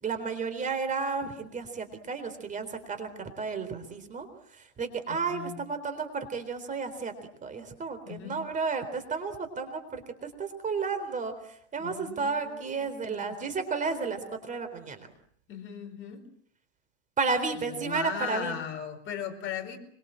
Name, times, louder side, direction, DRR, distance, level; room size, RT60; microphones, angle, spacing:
voice 1, 0.0-4.3 4.5-7.1 7.4-15.1 17.2-18.5, right 4 dB, 20° right, 9 dB, 4.0 m, -32 dB
voice 2, 5.1-5.6 8.0-8.4 11.8-13.4 15.5-16.2 17.7-19.8, left 8 dB, 35° left, 5 dB, 4.9 m, -38 dB
25.0 x 24.0 x 7.7 m, 0.66 s
supercardioid pair, 130°, 37 cm